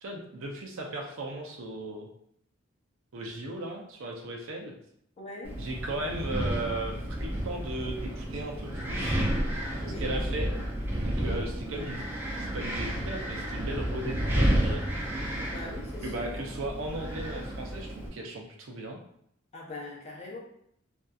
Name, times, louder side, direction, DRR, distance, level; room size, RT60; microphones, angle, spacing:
voice 1, 0.0-2.1 3.1-4.7 5.6-9.3 10.0-10.5 11.0-12.0 12.4-14.9 16.0-19.0, right 2 dB, 70° right, 1 dB, 0.5 m, -36 dB
voice 2, 5.2-5.6 9.8-10.2 11.2-11.5 15.4-16.4 19.5-20.4, left 2 dB, 30° left, -3 dB, 0.6 m, -41 dB
Wind, 5.5-18.1, right 1 dB, 10° right, 0.4 m, -31 dB
2.7 x 2.4 x 2.3 m, 0.70 s
head